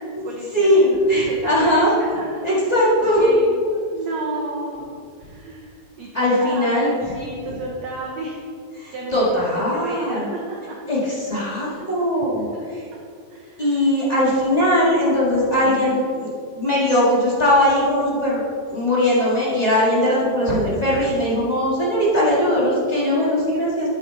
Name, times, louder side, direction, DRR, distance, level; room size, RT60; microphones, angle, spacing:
voice 1, 0.0-2.4 3.0-4.9 5.2-8.4 8.9-10.8 11.5-11.9 13.3-13.8 15.7-16.0, right 2 dB, 70° right, -2 dB, 1.7 m, -33 dB
voice 2, 0.5-1.9 2.4-3.3 6.1-6.9 7.5-7.6 8.8-10.2 10.9-12.8 13.6-18.4 18.7-23.9, left 1 dB, 25° left, -7 dB, 0.9 m, -19 dB
8.5 x 8.4 x 4.0 m, 2.3 s
omnidirectional pair, 4.1 m